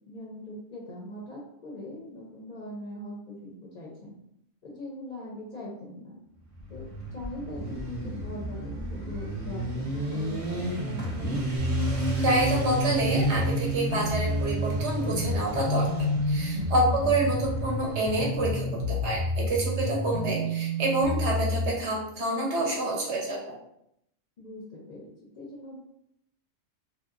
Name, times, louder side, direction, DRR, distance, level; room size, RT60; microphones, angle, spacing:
voice 1, 0.1-4.1 4.6-6.1 6.7-6.8 7.1-11.4 16.9-17.1 24.4-25.1 25.3-25.8, left 1 dB, 50° left, -3 dB, 0.5 m, -41 dB
Motorcycle, 6.5-18.2, right 1 dB, 80° right, 1.1 m, -32 dB
sound 1, 11.6-21.7, left 1 dB, 85° left, 0.9 m, -29 dB
voice 2, 12.2-23.4, right 2 dB, 65° right, -2 dB, 1.1 m, -28 dB
3.0 x 2.7 x 2.4 m, 0.76 s
omnidirectional pair, 1.3 m